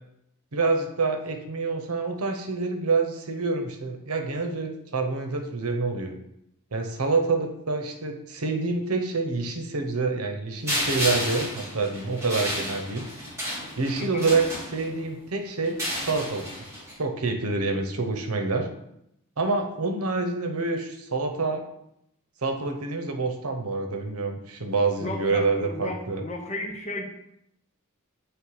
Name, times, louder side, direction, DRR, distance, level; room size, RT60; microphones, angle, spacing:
voice 1, 0.5-6.2 6.7-13.1 13.8-15.8 16.0-16.5 17.0-18.7 19.4-21.6 22.4-26.2, right 3 dB, 80° right, 4 dB, 0.9 m, -27 dB
sound 1, 10.7-15.1 15.6-16.9, equal, 15° right, 2.0 m, -32 dB
voice 2, 25.0-27.0, left 2 dB, 30° left, 1 dB, 1.0 m, -34 dB
7.9 x 3.2 x 4.8 m, 0.80 s
head